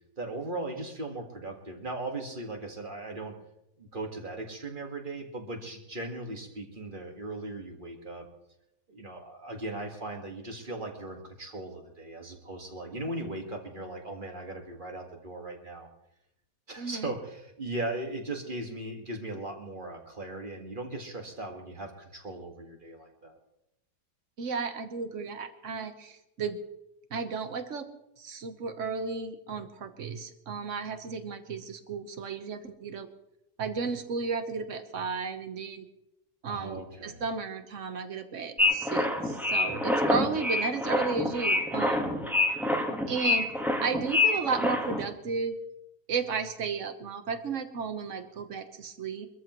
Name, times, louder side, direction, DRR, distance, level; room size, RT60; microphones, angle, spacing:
voice 1, 0.2-3.3 3.8-8.3 8.9-15.9 16.7-23.4 36.5-37.2, right 2 dB, 30° right, 3 dB, 1.9 m, -38 dB
voice 2, 16.8-17.1 24.4-26.6 27.1-27.9 28.2-33.1 33.6-35.8 36.4-42.1 43.1-43.5 43.8-45.6 46.1-49.3, right 5 dB, 50° right, 9 dB, 1.4 m, -33 dB
sound 1, 38.6-45.1, left 2 dB, ahead, 1.3 m, -27 dB
24.5 x 13.5 x 3.1 m, 0.85 s
omnidirectional pair, 1.8 m